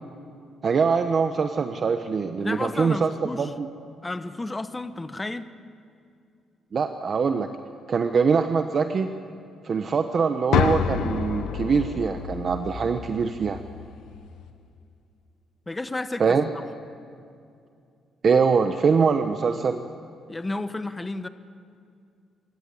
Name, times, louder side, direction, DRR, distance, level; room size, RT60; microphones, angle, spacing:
voice 1, 0.6-3.7 6.7-7.5 7.9-9.1 9.6-13.6 16.2-16.4 18.2-19.8, right 5 dB, 45° right, 7 dB, 1.0 m, -23 dB
voice 2, 2.4-3.5 4.0-5.5 15.7-16.6 20.3-21.3, left 2 dB, 15° left, 11 dB, 0.9 m, -32 dB
sound 1, 10.5-14.5, left 8 dB, 80° left, 1.2 m, -29 dB
25.5 x 14.0 x 9.7 m, 2.4 s
cardioid pair, 90°, 0 cm